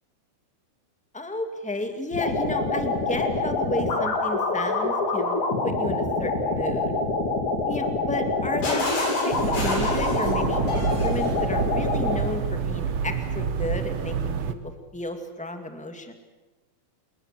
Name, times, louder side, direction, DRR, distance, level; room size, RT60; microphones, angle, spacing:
voice 1, 1.1-6.9 7.7-16.1, left 2 dB, 5° left, 6 dB, 0.7 m, -33 dB
sound 1, 2.1-12.2, left 3 dB, 50° left, 4.9 m, -26 dB
Shatter, 8.6-11.4, left 2 dB, 75° left, 9.4 m, -33 dB
sound 2, 9.3-14.5, right 6 dB, 85° right, 1.2 m, -28 dB
28.0 x 22.0 x 7.5 m, 1.1 s
omnidirectional pair, 4.4 m